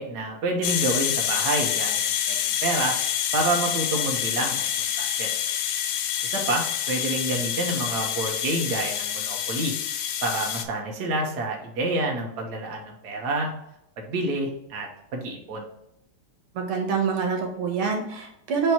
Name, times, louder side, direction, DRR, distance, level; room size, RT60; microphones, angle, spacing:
voice 1, 0.0-2.0 2.3-3.0 3.3-5.3 6.2-9.8 10.2-13.5 14.0-15.6, right 2 dB, 55° right, 0 dB, 1.6 m, -28 dB
sound 1, 0.6-10.6, left 9 dB, 80° left, 0.9 m, -27 dB
voice 2, 16.5-18.7, right 5 dB, 90° right, 2 dB, 2.2 m, -26 dB
7.1 x 3.0 x 4.5 m, 0.80 s
omnidirectional pair, 2.3 m